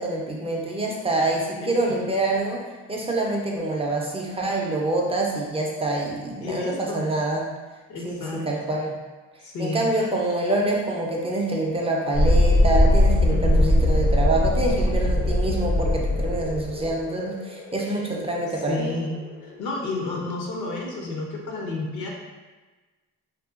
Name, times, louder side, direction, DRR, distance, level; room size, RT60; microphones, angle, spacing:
voice 1, 0.0-7.4 8.0-9.0 9.6-18.9, right 2 dB, 20° right, -1 dB, 0.4 m, -26 dB
voice 2, 1.6-2.0 6.4-7.0 7.9-8.5 9.4-9.8 13.2-13.7 17.8-18.0 18.7-22.1, left 2 dB, 80° left, -1 dB, 0.6 m, -31 dB
Thunderstorm, 12.1-19.6, left 1 dB, 40° left, 0.4 m, -21 dB
2.7 x 2.1 x 2.3 m, 1.2 s
cardioid pair, 90°, 30 cm